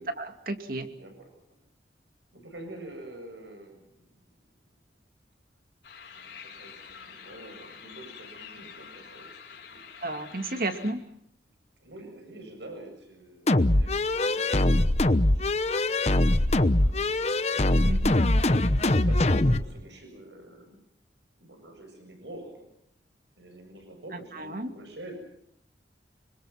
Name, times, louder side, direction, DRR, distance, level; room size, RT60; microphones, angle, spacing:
voice 1, 0.2-0.9 10.0-11.0 17.9-18.2 24.1-24.7, right 2 dB, 55° right, 7 dB, 2.5 m, -33 dB
voice 2, 1.0-1.6 2.3-4.2 6.1-10.2 11.8-15.9 16.8-17.6 18.4-20.8 21.4-22.7 23.4-25.1, right 1 dB, 90° right, 5 dB, 7.4 m, -47 dB
sound 1, 5.8-10.9, left 6 dB, 80° left, 5.3 m, -47 dB
sound 2, 13.5-19.6, left 1 dB, 35° left, 1.0 m, -22 dB
26.5 x 25.5 x 6.0 m, 0.74 s
head